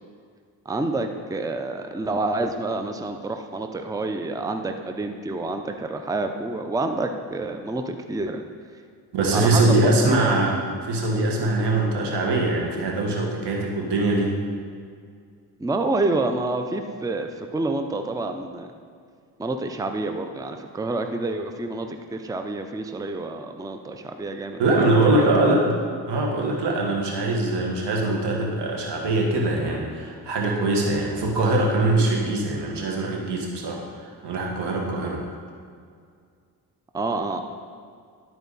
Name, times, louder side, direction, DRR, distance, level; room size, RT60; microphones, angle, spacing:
voice 1, 0.7-8.4 9.3-10.3 15.6-18.7 19.4-24.6 25.2-25.3 36.9-37.4, right 2 dB, 10° right, 6 dB, 0.5 m, -28 dB
voice 2, 9.1-14.4 24.6-25.7 26.1-35.2, right 2 dB, 80° right, 0 dB, 1.6 m, -22 dB
11.5 x 4.6 x 4.1 m, 2.2 s
cardioid pair, 70°, 40 cm